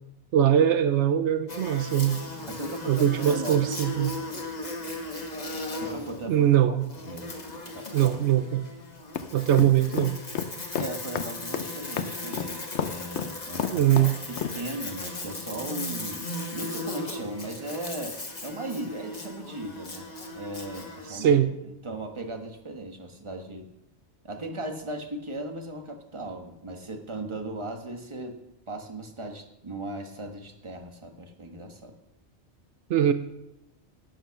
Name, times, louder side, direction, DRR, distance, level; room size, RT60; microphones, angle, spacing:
voice 1, 0.3-2.2 2.9-4.2 6.3-6.9 7.9-8.6 9.3-10.2 13.7-14.1 21.1-21.5 32.9-33.1, right 10 dB, 80° right, 11 dB, 1.0 m, -22 dB
Buzz, 1.5-21.3, left 2 dB, 35° left, 1.5 m, -37 dB
voice 2, 2.5-3.6 5.7-6.8 7.0-7.3 7.7-8.2 10.8-18.2 18.4-20.1 20.3-21.4 21.8-23.7 24.2-28.4 28.7-31.9, right 1 dB, 25° right, 5 dB, 1.3 m, -37 dB
sound 1, 9.2-14.6, left 8 dB, 75° left, 1.0 m, -30 dB
11.5 x 9.0 x 5.8 m, 0.91 s
omnidirectional pair, 1.2 m